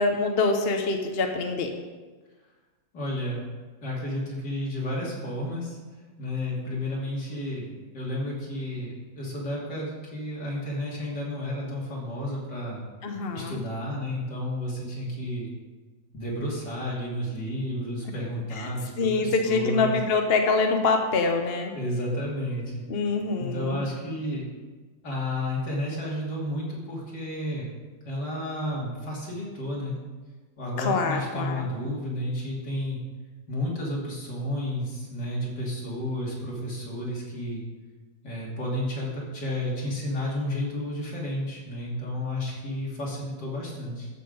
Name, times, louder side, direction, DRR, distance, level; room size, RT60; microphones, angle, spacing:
voice 1, 0.0-1.7 13.0-13.6 19.0-21.7 22.9-23.8 30.8-31.7, left 3 dB, 45° left, 4 dB, 0.9 m, -25 dB
voice 2, 2.9-3.5 3.8-5.8 6.2-12.9 13.3-15.5 16.1-20.0 21.7-22.8 23.4-24.4 25.0-27.7 28.0-30.0 30.6-33.0 33.5-37.6 38.2-44.1, left 1 dB, 65° left, -5 dB, 3.4 m, -32 dB
13.5 x 6.0 x 5.2 m, 1.3 s
omnidirectional pair, 2.0 m